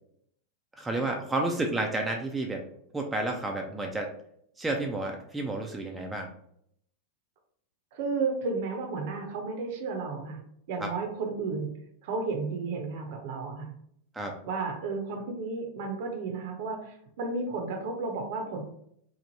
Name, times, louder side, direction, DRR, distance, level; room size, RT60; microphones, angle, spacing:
voice 1, 0.8-2.6 2.9-4.1 4.6-6.3 10.8-10.9 14.1-14.3, right 2 dB, 10° right, 1 dB, 0.4 m, -31 dB
voice 2, 7.9-10.4 10.7-11.7 12.0-13.7 14.4-18.6, right 4 dB, 50° right, 2 dB, 0.6 m, -33 dB
3.1 x 2.0 x 2.7 m, 0.70 s
figure-of-eight pair, 90°, 0 cm